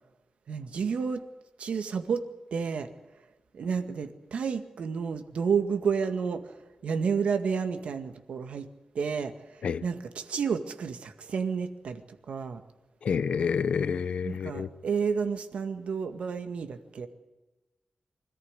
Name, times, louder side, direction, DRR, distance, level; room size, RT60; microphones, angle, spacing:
voice 1, 0.5-1.2 1.6-2.2 2.5-2.9 3.5-6.5 6.8-8.7 8.9-12.0 12.3-12.6 14.2-17.1, right 6 dB, 90° right, 8 dB, 1.9 m, -30 dB
voice 2, 13.0-14.7, left 6 dB, 80° left, 16 dB, 0.8 m, -28 dB
25.0 x 14.0 x 9.8 m, 1.1 s
wide cardioid pair, 145°, 2 cm